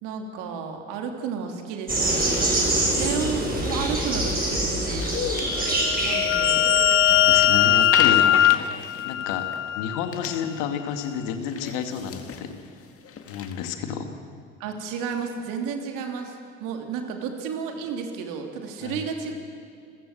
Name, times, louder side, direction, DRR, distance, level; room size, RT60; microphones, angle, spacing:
voice 1, 0.0-5.1 6.0-6.6 8.6-8.9 14.6-19.3, right 6 dB, 65° right, 4 dB, 3.0 m, -32 dB
sound 1, 1.9-7.2, right 1 dB, 25° right, 7.9 m, -25 dB
sound 2, 2.3-9.8 10.1-10.8 11.0-11.1 11.5-13.7, left 7 dB, 40° left, 2.0 m, -37 dB
sound 3, 5.6-10.1, left 12 dB, 85° left, 0.6 m, -20 dB
voice 2, 7.1-8.4 9.0-9.5 9.7-12.5 13.3-14.1 18.8-19.0, left 7 dB, 65° left, 7 dB, 2.1 m, -30 dB
28.0 x 15.0 x 7.9 m, 2.4 s
figure-of-eight pair, 55°, 36 cm